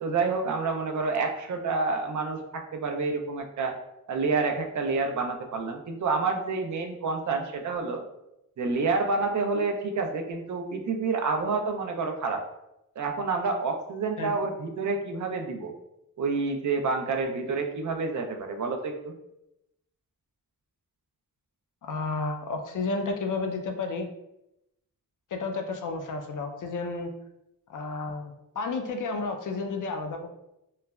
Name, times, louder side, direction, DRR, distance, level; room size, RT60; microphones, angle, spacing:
voice 1, 0.0-3.8 4.1-8.0 8.6-12.4 13.0-15.7 16.2-19.1, right 4 dB, 55° right, 4 dB, 0.5 m, -28 dB
voice 2, 21.8-24.1 25.3-27.1 27.7-30.3, left 3 dB, 60° left, 4 dB, 0.5 m, -31 dB
3.1 x 2.1 x 2.3 m, 0.88 s
cardioid pair, 60°, 35 cm